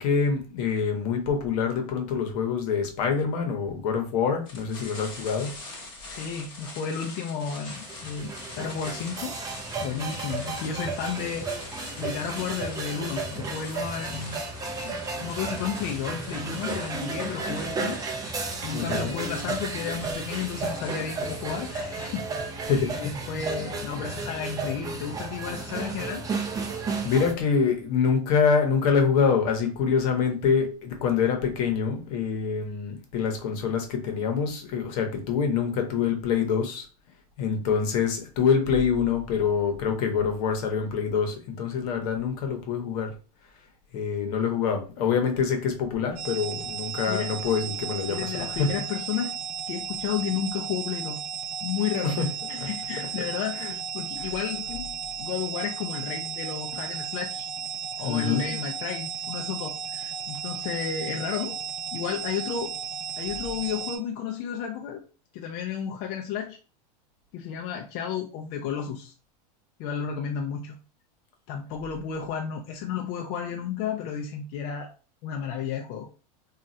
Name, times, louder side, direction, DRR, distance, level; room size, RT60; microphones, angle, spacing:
voice 1, 0.0-5.6 14.8-15.0 18.7-19.2 22.7-23.1 23.3-23.4 27.0-36.9 37.4-43.1 43.9-48.7 52.0-52.7 53.0-53.1 53.6-53.7 54.2-54.3 54.7-54.8 58.0-58.6, left 6 dB, 65° left, 4 dB, 0.9 m, -26 dB
sound 1, 4.4-22.1, left 2 dB, 25° left, 1.0 m, -44 dB
voice 2, 6.1-9.4 9.8-11.5 12.0-14.4 14.7-14.8 15.2-18.0 18.6-22.3 23.0-26.2 47.1-47.3 48.1-49.4 49.7-51.2 51.6-52.2 52.5-54.7 55.2-57.5 58.0-61.6 61.9-62.7 63.2-65.0 65.3-66.6 67.3-69.1 69.8-70.8 71.5-74.9 75.2-76.1, left 7 dB, 45° left, 2 dB, 0.4 m, -32 dB
sound 2, 7.5-27.3, right 3 dB, 15° right, 0.4 m, -33 dB
sound 3, 46.2-64.0, right 8 dB, 60° right, 0.6 m, -34 dB
3.0 x 2.3 x 2.6 m, 0.35 s
supercardioid pair, 130°, 21 cm